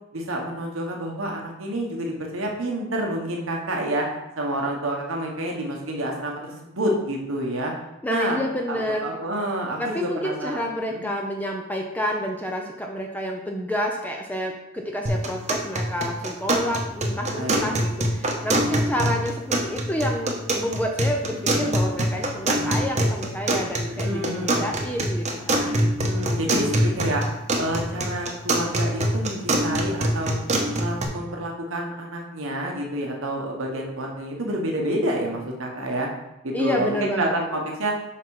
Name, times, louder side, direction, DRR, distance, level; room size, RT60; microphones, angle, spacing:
voice 1, 0.1-4.1 4.4-7.7 8.1-8.4 8.7-10.6 10.9-11.1 17.3-17.6 23.9-24.8 25.8-27.2 27.6-30.3 30.7-36.1 36.4-38.0, right 1 dB, 70° right, 0 dB, 1.2 m, -28 dB
voice 2, 8.0-9.1 9.8-25.9 36.5-37.5, equal, 10° left, 1 dB, 0.6 m, -29 dB
sound 1, 15.1-31.1, right 1 dB, 35° right, 1.0 m, -25 dB
6.0 x 5.8 x 4.8 m, 0.92 s
head